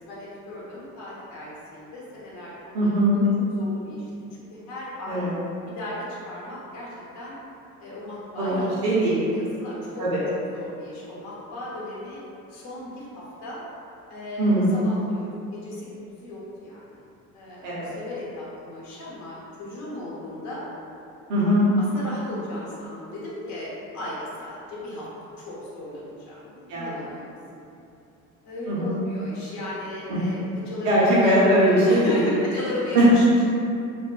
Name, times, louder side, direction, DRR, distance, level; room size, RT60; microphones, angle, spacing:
voice 1, 0.0-2.9 3.5-5.3 5.8-6.9 7.1-7.3 7.8-8.7 9.0-10.1 10.5-12.2 12.5-13.6 14.1-15.3 15.5-16.8 17.3-20.6 21.8-23.7 23.9-25.1 25.4-27.3 28.4-30.4 30.6-31.5 31.8-33.4, left 1 dB, 45° left, -7 dB, 0.8 m, -36 dB
voice 2, 2.7-3.2 5.1-5.3 8.4-9.2 10.0-10.2 14.4-14.7 17.6-18.0 21.3-21.7 26.7-27.0 28.7-29.0 30.8-32.2 32.9-33.1, right 1 dB, 70° right, -8 dB, 0.9 m, -20 dB
2.5 x 2.2 x 2.4 m, 2.6 s
hypercardioid pair, 65°, 42 cm